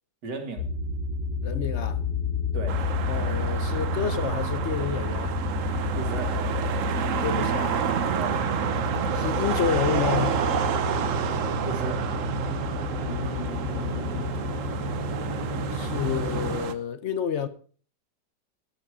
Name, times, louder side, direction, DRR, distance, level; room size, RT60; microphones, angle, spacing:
voice 1, 0.2-0.7 2.5-2.8 6.0-6.3 8.1-8.4 11.6-12.0, right 3 dB, 75° right, 2.6 m, -34 dB
sound 1, 0.6-16.6, left 2 dB, 85° left, 4.2 m, -30 dB
voice 2, 1.4-2.0 3.1-5.4 7.2-7.9 9.1-10.4 13.0-14.3 15.7-17.5, left 8 dB, 55° left, 0.9 m, -30 dB
sound 2, 2.7-16.7, right 8 dB, 55° right, 1.0 m, -30 dB
13.5 x 9.7 x 4.9 m
omnidirectional pair, 1.9 m